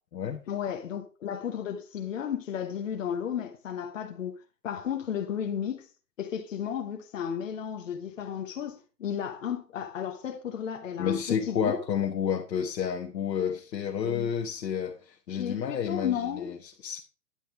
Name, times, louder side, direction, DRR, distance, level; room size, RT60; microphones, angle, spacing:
voice 1, 0.5-4.4 4.6-5.9 6.2-11.8 14.0-14.3 15.4-16.5, left 8 dB, 50° left, 1.3 m, -33 dB
voice 2, 11.0-17.0, left 8 dB, 85° left, 1.5 m, -30 dB
10.5 x 7.4 x 3.5 m
hypercardioid pair, 180°, 49 cm